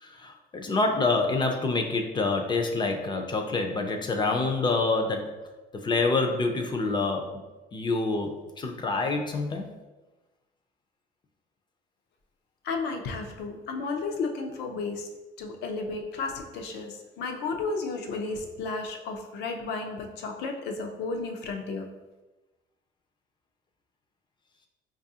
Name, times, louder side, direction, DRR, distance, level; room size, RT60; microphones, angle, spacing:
voice 1, 0.0-5.3 5.7-7.2 7.7-9.7, left 3 dB, 25° left, 4 dB, 0.4 m, -27 dB
voice 2, 12.6-15.1 15.4-21.8, left 4 dB, 80° left, 4 dB, 0.6 m, -33 dB
4.6 x 2.4 x 2.7 m, 1.1 s
cardioid pair, 110°, 17 cm